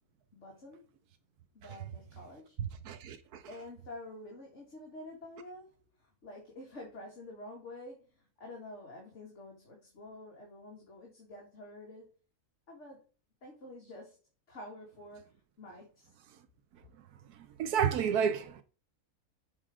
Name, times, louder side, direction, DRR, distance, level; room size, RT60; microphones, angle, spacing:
voice 1, 0.3-0.9 1.5-2.6 3.5-12.2 12.7-13.1 13.4-14.2 14.5-16.1, left 1 dB, 50° left, 2.2 m, -49 dB
voice 2, 2.9-3.4 17.6-18.6, right 7 dB, 80° right, 1.2 m, -30 dB
7.5 x 4.5 x 4.9 m
omnidirectional pair, 1.6 m